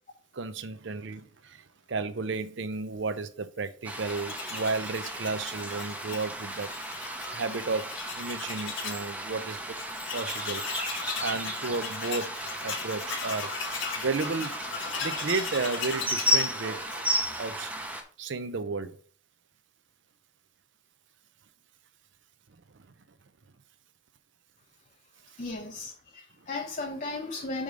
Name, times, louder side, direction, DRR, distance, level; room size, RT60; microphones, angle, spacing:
voice 1, 0.3-6.7 7.3-9.6 10.1-10.6 11.2-13.5 14.0-14.6 15.0-16.8 17.4-17.7 18.2-19.0, right 4 dB, 60° right, 0.6 m, -33 dB
sound 1, 3.8-18.0, equal, 5° right, 0.7 m, -34 dB
Tools, 4.0-9.1 9.4-9.5 9.8-17.4, left 5 dB, 70° left, 1.3 m, -38 dB
voice 2, 25.4-27.6, left 3 dB, 35° left, 0.6 m, -35 dB
5.2 x 5.0 x 5.0 m
head